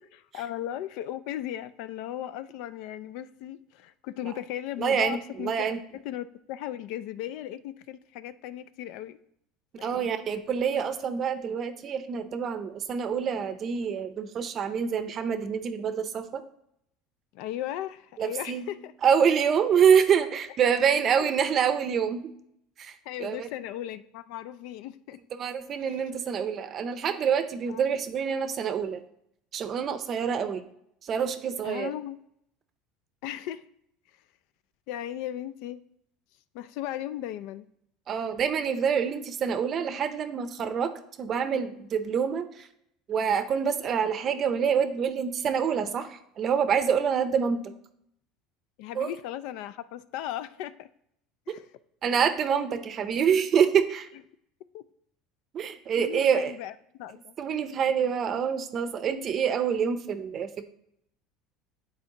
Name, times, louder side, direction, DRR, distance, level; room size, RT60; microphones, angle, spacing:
voice 1, 0.3-5.8 6.0-9.2 9.8-10.2 17.3-18.9 19.9-20.0 21.2-21.3 23.0-25.2 25.8-26.0 27.7-27.8 31.6-32.2 33.2-33.7 34.9-35.8 36.5-37.7 48.8-50.9 51.5-51.7 54.7-54.8 56.0-57.3, left 12 dB, 65° left, 14 dB, 0.3 m, -37 dB
voice 2, 4.8-5.8 9.8-16.4 18.2-18.6 19.0-22.3 22.8-22.9 23.2-23.5 25.4-29.0 29.5-30.6 31.0-31.9 38.1-42.7 43.1-47.7 49.0-49.1 52.0-54.1 55.5-56.5 57.4-60.6, right 7 dB, 35° right, 10 dB, 0.6 m, -26 dB
9.5 x 4.4 x 2.9 m, 0.74 s
supercardioid pair, 135°, 0 cm